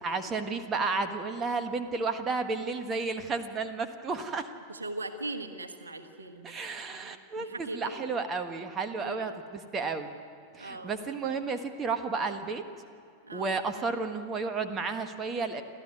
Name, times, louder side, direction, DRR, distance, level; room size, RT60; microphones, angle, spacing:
voice 1, 0.0-4.5 6.4-10.1 10.5-12.6 13.3-15.6, right 4 dB, 25° right, 8 dB, 1.4 m, -32 dB
voice 2, 4.7-6.5 6.9-8.1 9.0-9.3 10.6-10.9 13.2-13.5, right 2 dB, 75° right, 6 dB, 1.4 m, -40 dB
29.5 x 13.0 x 9.6 m, 2.4 s
figure-of-eight pair, 90°, 0 cm